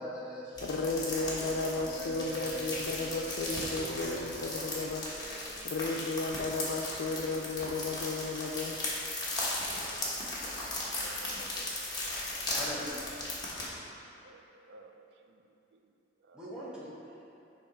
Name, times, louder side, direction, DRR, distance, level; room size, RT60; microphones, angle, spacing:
voice 1, 0.0-0.6 1.4-4.6 12.5-13.1 16.3-16.9, left 1 dB, 5° right, -8 dB, 0.8 m, -43 dB
voice 2, 0.6-5.0 5.6-8.8, left 3 dB, 90° left, 0 dB, 0.4 m, -34 dB
sound 1, 0.6-13.7, left 2 dB, 25° left, 1.1 m, -37 dB
voice 3, 3.7-4.5 5.2-5.6 9.7-10.5 10.8-11.7 12.5-12.9 13.8-13.9 14.2-14.9 16.3-16.4, right 4 dB, 75° right, 5 dB, 0.4 m, -50 dB
6.9 x 2.9 x 5.0 m, 2.8 s
head